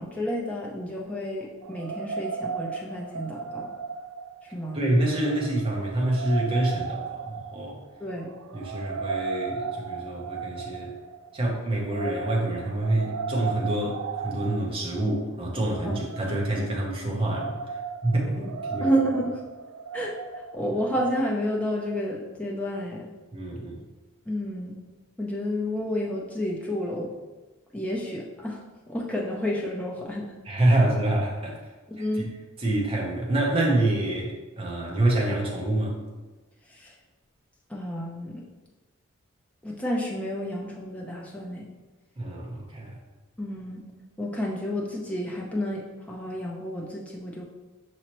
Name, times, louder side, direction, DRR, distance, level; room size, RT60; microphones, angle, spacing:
voice 1, 0.0-3.7 4.5-4.9 8.0-8.3 15.8-16.0 18.8-19.3 19.9-23.1 24.3-24.8 25.2-27.1 27.7-28.6 28.9-30.3 30.7-30.8 31.9-32.3 36.7-36.9 37.7-38.4 39.6-41.7 43.4-43.8 44.2-47.4, equal, 5° left, -3 dB, 0.5 m, -30 dB
sound 1, 1.6-20.6, right 5 dB, 85° right, 0.3 m, -36 dB
voice 2, 4.7-7.8 8.5-11.0 11.3-17.6 18.0-19.0 23.3-23.8 30.4-31.6 32.6-36.0 42.2-42.9, right 1 dB, 25° right, -2 dB, 0.8 m, -26 dB
5.5 x 3.0 x 3.0 m, 1.2 s
head